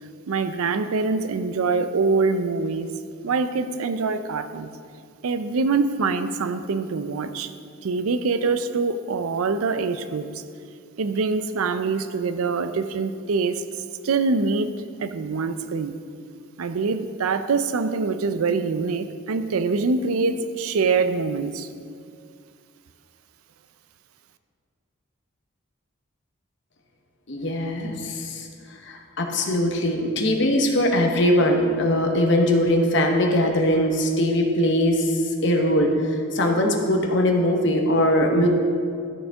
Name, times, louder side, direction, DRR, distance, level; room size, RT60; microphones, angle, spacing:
voice 1, 0.3-2.9 3.2-4.7 5.2-7.5 7.8-10.3 11.0-13.6 14.0-16.0 16.6-21.7, right 4 dB, 85° right, 11 dB, 0.5 m, -24 dB
voice 2, 27.3-28.5 28.8-35.1 35.4-35.9 36.3-38.5, left 1 dB, 55° left, 2 dB, 1.0 m, -21 dB
13.0 x 6.6 x 3.5 m, 2.3 s
head